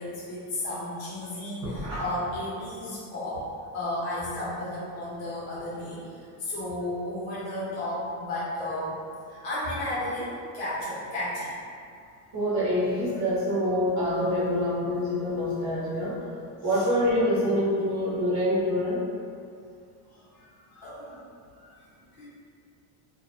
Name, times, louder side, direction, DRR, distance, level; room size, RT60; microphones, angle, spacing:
voice 1, 0.0-3.4 3.7-8.9 9.3-11.5 16.7-16.9 20.1-21.2 21.6-21.8 22.1-22.3, left 1 dB, 85° left, -9 dB, 1.2 m, -33 dB
voice 2, 1.6-2.0 12.3-16.2 16.6-19.0, equal, 40° right, -9 dB, 0.9 m, -26 dB
2.7 x 2.1 x 2.6 m, 2.4 s
cardioid pair, 125°, 46 cm